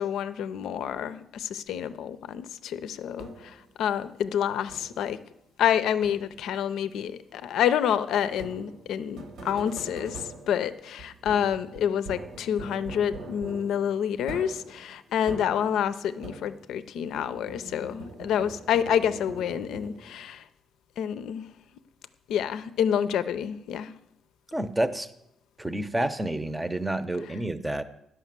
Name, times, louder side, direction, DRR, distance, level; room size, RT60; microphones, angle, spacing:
voice 1, 0.0-5.2 5.6-20.4 21.0-21.5 22.3-23.9, left 9 dB, 80° left, 13 dB, 0.5 m, -28 dB
sound 1, 3.2-3.7 4.7-5.2 6.0-6.6 8.3-16.8 17.1-20.3, right 2 dB, 75° right, 1.3 m, -43 dB
voice 2, 24.5-25.1 25.6-27.8, right 1 dB, 10° right, 12 dB, 0.7 m, -29 dB
10.0 x 5.9 x 7.4 m, 0.80 s
cardioid pair, 90°, 0 cm